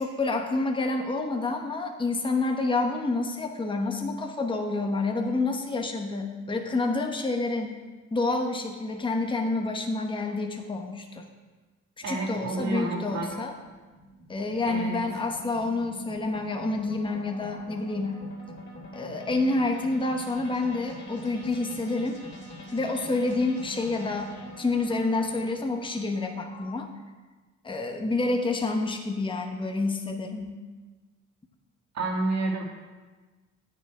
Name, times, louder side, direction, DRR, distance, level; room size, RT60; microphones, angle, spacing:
voice 1, 0.0-7.7 8.1-11.3 12.1-13.5 14.3-18.2 18.9-22.2 22.7-24.3 24.6-26.9 27.6-30.6, left 3 dB, 15° left, 3 dB, 0.9 m, -28 dB
voice 2, 12.0-13.3 14.6-15.0 31.9-32.6, right 3 dB, 65° right, 0 dB, 1.9 m, -29 dB
sound 1, 13.3-26.8, equal, 35° left, 2.8 m, -45 dB
9.2 x 6.9 x 4.9 m, 1.3 s
cardioid pair, 90°, 30 cm